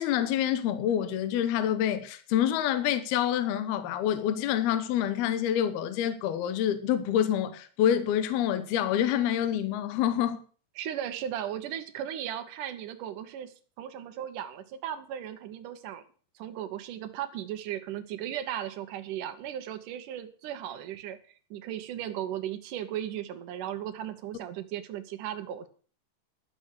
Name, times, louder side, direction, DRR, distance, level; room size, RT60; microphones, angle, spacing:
voice 1, 0.0-10.4, left 10 dB, 70° left, 2.6 m, -27 dB
voice 2, 10.8-16.0 16.4-21.2 21.5-25.7, right 10 dB, 75° right, 2.0 m, -36 dB
12.0 x 7.4 x 8.3 m
omnidirectional pair, 5.2 m